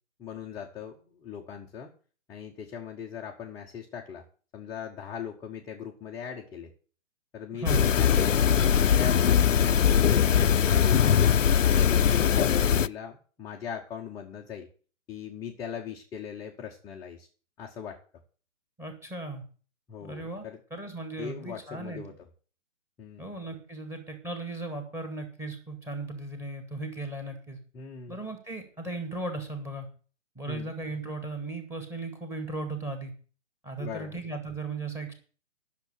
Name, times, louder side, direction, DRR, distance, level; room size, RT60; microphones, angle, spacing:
voice 1, 0.2-1.9 2.3-4.2 4.5-6.7 7.3-14.7 15.1-17.3 17.6-18.0 19.9-20.6 21.2-22.1 23.0-23.3 27.7-28.2 30.5-30.7 33.8-34.2, left 7 dB, 10° left, -1 dB, 0.8 m, -39 dB
voice 2, 7.5-7.8 18.8-19.4 20.0-22.0 23.2-27.6 28.1-29.9 30.4-33.1 33.6-35.1, right 2 dB, 5° right, 6 dB, 2.0 m, -37 dB
sound 1, 7.7-12.9, left 8 dB, 90° left, 0.6 m, -21 dB
10.5 x 6.7 x 8.0 m, 0.39 s
figure-of-eight pair, 140°, 37 cm